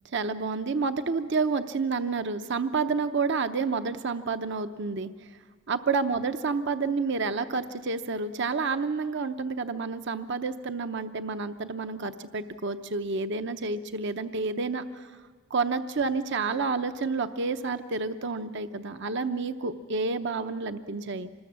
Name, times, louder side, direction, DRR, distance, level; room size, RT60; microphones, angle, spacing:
voice 1, 0.0-5.4 5.7-15.2 15.5-21.3, right 4 dB, 60° right, 10 dB, 0.8 m, -29 dB
26.5 x 20.5 x 7.4 m, 1.5 s
head